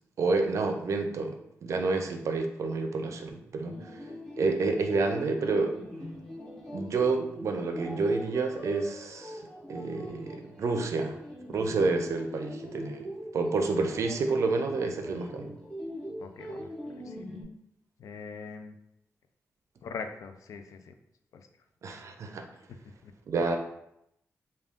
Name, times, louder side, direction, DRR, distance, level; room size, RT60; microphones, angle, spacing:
voice 1, 0.2-4.0 4.4-5.7 6.7-9.4 9.7-11.2 11.5-13.0 13.3-15.6 21.8-22.5 23.3-23.6, right 3 dB, 65° right, 5 dB, 0.4 m, -29 dB
sound 1, 3.6-17.4, equal, 10° left, 0.8 m, -42 dB
voice 2, 13.8-14.1 14.8-14.9 16.2-17.2 18.0-18.8 19.8-20.9 21.3-21.5 22.7-23.1, left 5 dB, 85° left, 7 dB, 0.4 m, -43 dB
3.5 x 2.3 x 3.5 m, 0.79 s
wide cardioid pair, 145°, 5 cm